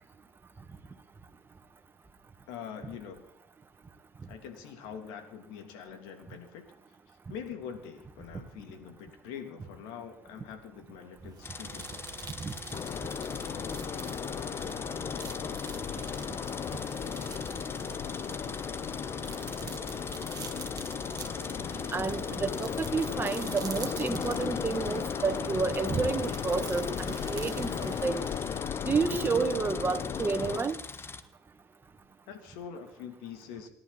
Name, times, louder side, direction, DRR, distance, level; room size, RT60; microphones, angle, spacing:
voice 1, 2.5-3.3 4.3-6.6 7.3-12.0 32.3-33.7, left 7 dB, 85° left, 6 dB, 3.1 m, -44 dB
sound 1, 11.2-29.1, right 8 dB, 50° right, 1.7 m, -47 dB
sound 2, 11.4-31.2, left 4 dB, 30° left, 1.4 m, -43 dB
sound 3, 12.7-30.6, left 8 dB, 45° left, 0.9 m, -36 dB
voice 2, 21.9-28.3 28.8-30.8, right 4 dB, 25° right, 6 dB, 2.1 m, -30 dB
28.0 x 11.5 x 4.2 m, 0.81 s
supercardioid pair, 85°, 8 cm